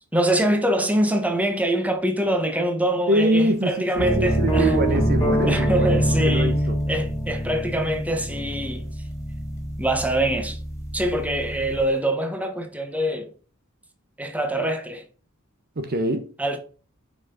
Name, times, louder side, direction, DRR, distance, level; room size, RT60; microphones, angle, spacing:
voice 1, 0.1-4.8 5.5-6.6 6.9-8.9 9.8-10.6 10.9-13.3 14.2-15.0 16.4-16.6, right 1 dB, 5° right, 1.3 m, -24 dB
voice 2, 3.1-6.8 15.8-16.3, right 1 dB, 50° right, 0.9 m, -24 dB
sound 1, 4.0-11.9, right 1 dB, 15° left, 2.9 m, -25 dB
6.2 x 5.8 x 3.9 m
head